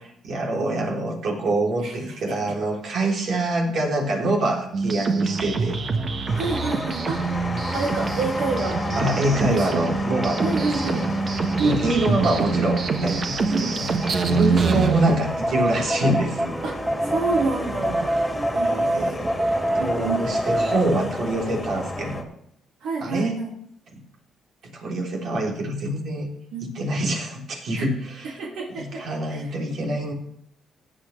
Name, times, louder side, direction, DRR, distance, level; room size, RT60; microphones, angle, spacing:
voice 1, 0.2-5.8 9.0-10.6 10.8-11.0 11.6-16.6 18.8-19.3 19.6-22.3 23.0-23.4 23.9-24.0 24.7-26.3 26.6-28.4 28.8-30.1, right 1 dB, 65° right, 0 dB, 3.6 m, -25 dB
voice 2, 1.8-2.5 6.3-7.2 7.7-9.9 10.4-11.1 11.6-12.2 13.5-13.8 14.4-14.9 16.6-16.8 17.0-18.1 18.5-19.2 19.8-20.4 22.8-23.5 26.5-26.7 27.7-27.9 28.4-29.5, right 4 dB, 85° right, -1 dB, 2.6 m, -29 dB
sound 1, 4.7-15.1, right 4 dB, 45° right, 1.4 m, -25 dB
sound 2, 6.3-22.2, left 2 dB, 20° left, 2.0 m, -33 dB
sound 3, 15.2-20.9, right 1 dB, 15° right, 1.0 m, -25 dB
16.0 x 9.0 x 3.4 m, 0.74 s
cardioid pair, 90°, 0 cm